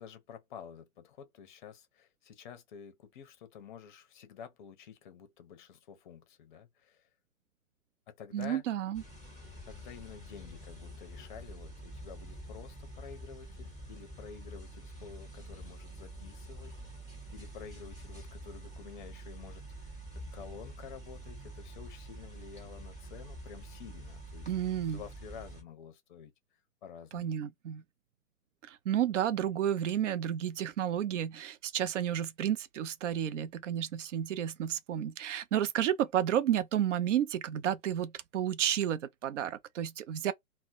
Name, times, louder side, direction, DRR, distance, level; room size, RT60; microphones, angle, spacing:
voice 1, 0.0-7.1 8.1-8.6 9.7-16.7 17.3-20.0 20.3-26.3 26.8-27.4, left 7 dB, 35° left, 0.6 m, -50 dB
voice 2, 8.3-9.0 24.5-25.0 27.1-27.8 28.6-40.3, right 10 dB, 55° right, 0.5 m, -31 dB
sound 1, 8.9-25.6, right 1 dB, 10° right, 0.7 m, -47 dB
2.1 x 2.1 x 3.8 m
hypercardioid pair, 130°, 44 cm